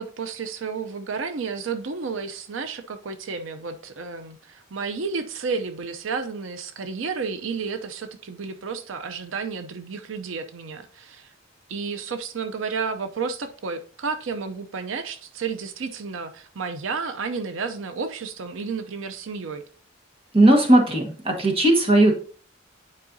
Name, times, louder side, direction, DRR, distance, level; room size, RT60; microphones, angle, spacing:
voice 1, 0.0-11.3 11.7-19.6, right 5 dB, 90° right, 0.6 m, -31 dB
voice 2, 20.3-22.1, right 1 dB, 30° right, 1.5 m, -17 dB
9.7 x 4.7 x 2.7 m
head